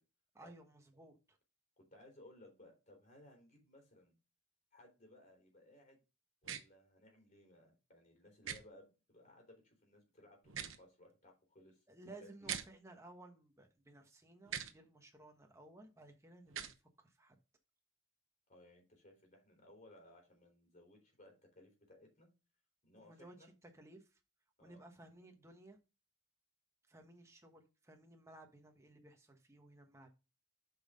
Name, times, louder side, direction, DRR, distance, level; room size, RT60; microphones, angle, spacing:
voice 1, 0.3-1.4 11.9-17.3 23.0-23.4 23.6-24.2 24.6-25.8 26.9-30.1, right 2 dB, 15° right, 1.3 m, -58 dB
voice 2, 1.9-4.2 4.7-6.0 6.4-11.8 12.2-12.5 18.5-22.3 22.8-23.5 24.6-24.8, left 1 dB, 35° left, 3.9 m, -62 dB
sound 1, 6.4-6.6 8.4-8.6 10.4-10.8 12.4-12.7 14.5-14.7 16.5-16.7, right 8 dB, 70° right, 0.9 m, -42 dB
8.0 x 5.6 x 3.7 m
head